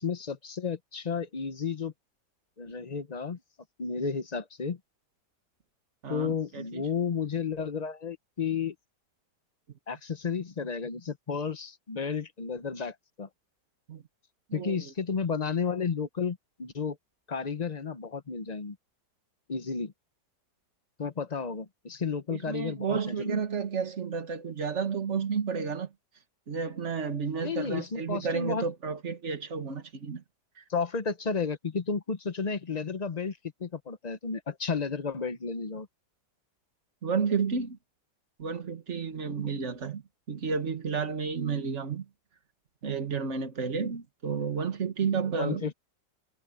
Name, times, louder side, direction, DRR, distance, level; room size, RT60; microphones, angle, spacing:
voice 1, 0.0-1.9 2.6-3.4 3.8-4.8 6.1-8.7 9.9-13.3 14.5-17.0 17.3-18.8 19.5-19.9 21.0-23.4 27.4-28.6 30.7-35.9 45.4-45.7, left 5 dB, 35° left, 0.7 m, -32 dB
voice 2, 6.0-6.9 13.9-14.0 14.5-14.9 22.3-25.9 26.5-30.2 30.6-30.7 37.0-37.8 38.4-40.0 40.3-42.1 42.8-45.7, right 5 dB, 45° right, 1.9 m, -31 dB
omnidirectional pair, 1.8 m